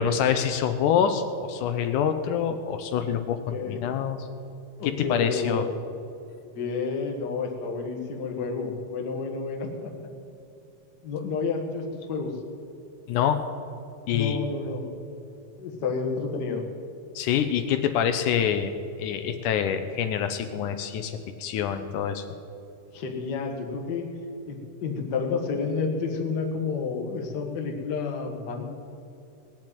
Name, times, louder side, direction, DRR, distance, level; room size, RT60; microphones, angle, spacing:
voice 1, 0.0-4.3 4.8-5.7 13.1-13.4 14.1-14.4 17.2-22.2, left 8 dB, 80° left, 8 dB, 2.1 m, -26 dB
voice 2, 3.5-3.9 4.8-5.7 6.5-10.1 11.0-12.3 14.1-14.9 15.6-16.6 22.9-24.1 24.5-28.6, left 4 dB, 45° left, 1 dB, 1.6 m, -30 dB
18.5 x 7.5 x 9.3 m, 2.7 s
omnidirectional pair, 3.7 m